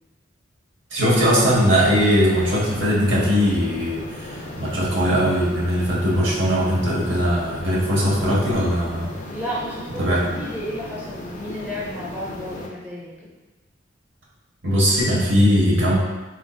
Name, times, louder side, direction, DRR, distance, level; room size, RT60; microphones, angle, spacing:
voice 1, 0.9-9.1 10.0-10.4 14.6-16.0, equal, 65° right, -5 dB, 0.8 m, -20 dB
sound 1, 1.1-12.7, left 1 dB, 40° left, 0.4 m, -36 dB
voice 2, 9.3-10.1 10.4-13.3, equal, 10° right, -7 dB, 0.6 m, -32 dB
3.7 x 2.5 x 2.2 m, 1.2 s
head